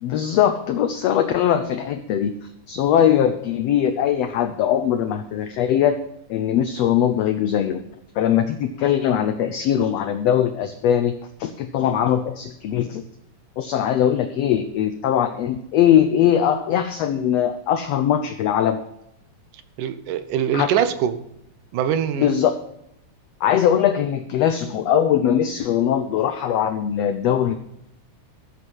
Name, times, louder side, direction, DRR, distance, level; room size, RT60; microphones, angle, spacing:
voice 1, 0.0-6.0 6.3-7.8 8.1-11.1 11.4-13.0 13.6-18.8 20.5-20.7 22.2-22.5 23.4-27.6, left 9 dB, 70° left, 9 dB, 1.6 m, -21 dB
voice 2, 19.8-21.2 21.7-22.3, right 9 dB, 80° right, 11 dB, 2.5 m, -23 dB
14.5 x 8.0 x 5.6 m, 0.78 s
omnidirectional pair, 3.7 m